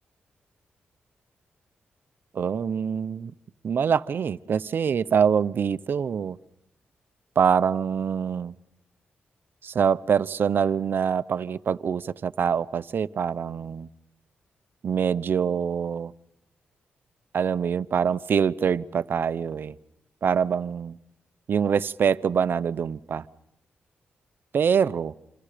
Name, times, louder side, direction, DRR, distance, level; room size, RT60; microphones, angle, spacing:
voice 1, 2.3-3.3 3.6-6.4 7.4-8.5 9.6-13.9 14.8-16.1 17.3-19.7 20.2-21.0 21.5-23.2 24.5-25.1, right 7 dB, 65° right, 0.8 m, -24 dB
27.5 x 27.0 x 5.1 m
cardioid pair, 75°, 4 cm